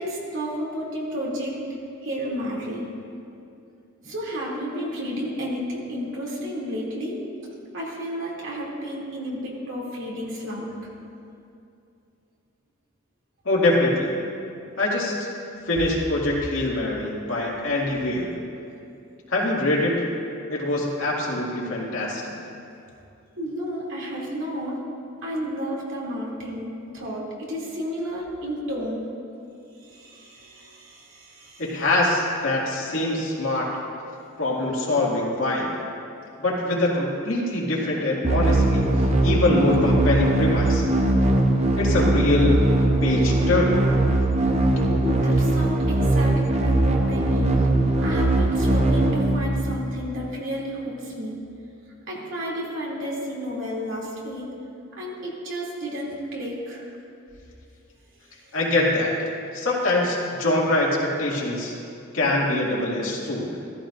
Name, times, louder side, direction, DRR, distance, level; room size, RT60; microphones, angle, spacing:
voice 1, 0.0-1.6 2.0-2.9 4.0-7.2 7.7-10.7 23.4-24.8 25.2-27.2 27.5-29.0 29.9-31.6 44.8-47.7 48.0-51.4 52.1-54.5 55.0-56.8, equal, 65° right, -4 dB, 2.8 m, -31 dB
voice 2, 13.4-14.1 14.8-15.3 15.7-18.3 19.3-20.0 20.5-22.3 31.6-33.7 34.4-35.7 36.4-38.9 39.2-40.8 41.8-42.6 43.0-43.9 44.8-45.0 58.5-59.1 59.5-61.8 62.1-63.5, left 2 dB, 90° left, -4 dB, 2.3 m, -23 dB
sound 1, 38.2-50.2, right 2 dB, 35° right, 0.8 m, -21 dB
14.5 x 14.5 x 2.6 m, 2.6 s
head